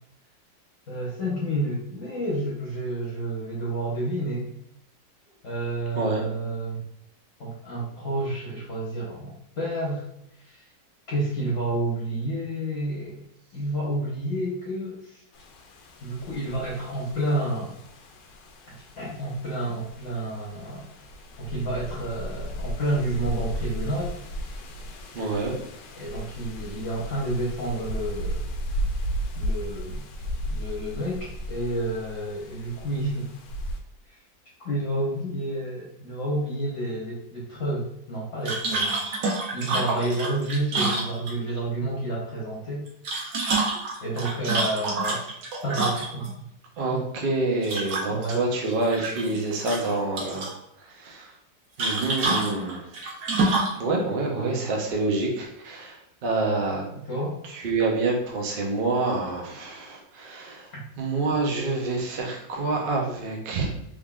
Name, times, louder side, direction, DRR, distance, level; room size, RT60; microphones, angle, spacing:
voice 1, 0.9-4.5 5.4-6.8 7.4-10.0 10.3-10.6 11.1-13.2 13.5-15.2 16.0-17.7 19.0-20.9 21.4-24.1 25.9-28.4 29.3-30.0 30.5-33.3 34.1-34.2 34.6-38.9 39.5-42.8 44.0-45.3 45.6-46.3 46.9-47.0 48.1-48.4 54.3-54.7 56.9-57.4 60.7-60.8, right 1 dB, 50° left, -5 dB, 1.1 m, -30 dB
sound 1, 15.3-33.8, equal, 70° left, 1.0 m, -35 dB
voice 2, 25.1-25.6 46.8-50.5 50.8-51.3 51.8-52.9 53.8-56.8 57.5-60.7 61.0-63.7, right 3 dB, 60° right, -1 dB, 0.5 m, -27 dB
sound 2, 38.5-41.6 42.9-46.3 47.6-48.4 48.7-49.4 49.7-50.5 51.8-53.8, right 3 dB, 80° right, 1.5 m, -27 dB
3.7 x 3.3 x 2.3 m, 0.77 s
omnidirectional pair, 1.9 m